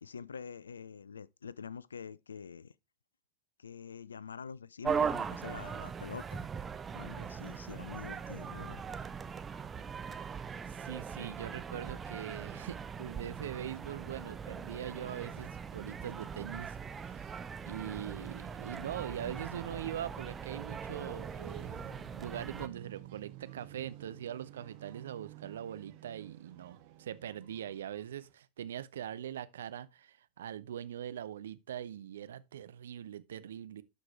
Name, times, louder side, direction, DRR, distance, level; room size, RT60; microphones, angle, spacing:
voice 1, 0.0-2.7 3.6-6.4 6.9-8.8, left 6 dB, 70° left, 0.4 m, -46 dB
sound 1, 4.8-22.7, right 6 dB, 20° right, 0.6 m, -40 dB
voice 2, 10.7-16.8 17.1-17.3 17.6-21.8 22.1-33.8, right 10 dB, 60° right, 0.6 m, -42 dB
sound 2, 12.2-28.3, right 14 dB, 45° right, 1.0 m, -55 dB
12.0 x 4.7 x 3.2 m
figure-of-eight pair, 90°, 0 cm